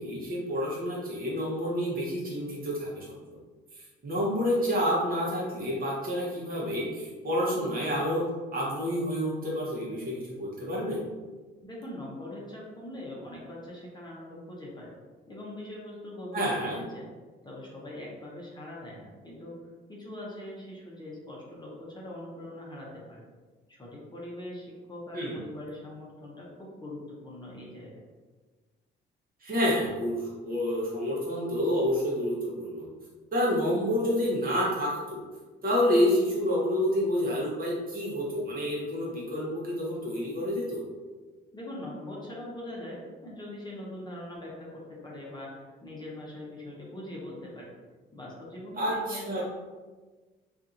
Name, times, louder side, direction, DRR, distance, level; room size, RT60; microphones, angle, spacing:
voice 1, 0.0-3.2 4.0-8.2 8.5-11.0 16.3-16.8 25.1-25.4 29.4-32.9 33.3-35.2 35.6-40.8 48.8-49.4, equal, 45° right, -5 dB, 1.0 m, -28 dB
voice 2, 11.6-14.9 15.3-16.4 16.9-17.1 17.4-19.5 19.9-23.2 23.7-28.0 41.5-47.7 48.1-49.4, left 1 dB, 20° left, -4 dB, 0.7 m, -42 dB
2.7 x 2.5 x 2.5 m, 1.3 s
cardioid pair, 90°, 20 cm